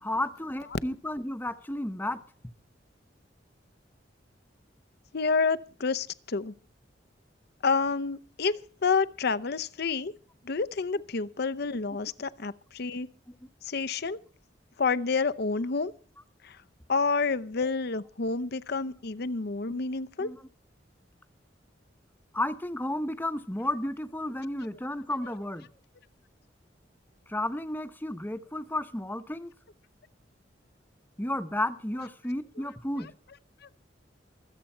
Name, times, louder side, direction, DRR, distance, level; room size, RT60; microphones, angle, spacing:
voice 1, 0.0-2.2 19.7-19.8 20.2-20.4 22.3-25.7 27.3-29.5 31.2-33.1, left 1 dB, 10° left, 0.9 m, -32 dB
voice 2, 5.1-6.5 7.6-10.1 10.4-13.1 13.6-14.2 14.8-15.9 16.4-16.6 16.9-20.3 33.0-33.1, left 4 dB, 60° left, 0.7 m, -29 dB
25.0 x 8.4 x 4.4 m
head